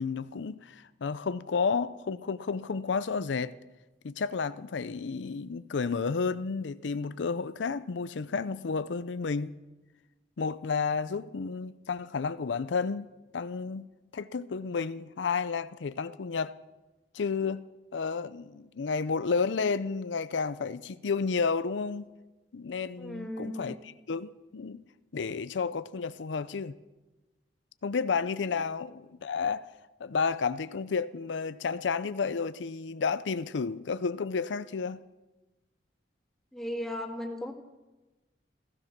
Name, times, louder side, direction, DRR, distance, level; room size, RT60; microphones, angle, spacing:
voice 1, 0.0-3.5 4.0-9.5 10.4-13.1 13.3-13.9 14.1-16.5 17.1-17.6 17.9-22.1 22.5-24.8 25.1-26.7 27.8-29.7 30.0-35.0, left 5 dB, 85° left, 0.5 m, -31 dB
voice 2, 23.0-23.8 36.5-37.5, left 1 dB, ahead, 1.7 m, -36 dB
15.5 x 15.5 x 5.9 m
head